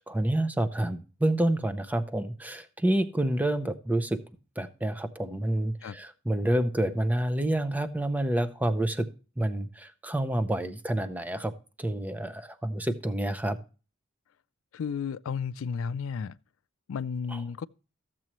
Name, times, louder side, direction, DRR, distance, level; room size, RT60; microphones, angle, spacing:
voice 1, 0.0-4.2 4.6-9.1 9.4-11.5 11.8-13.6 17.3-17.4, right 1 dB, 5° right, 0.5 m, -28 dB
voice 2, 14.7-16.4 16.9-17.7, left 6 dB, 70° left, 0.4 m, -33 dB
13.5 x 7.5 x 3.0 m
head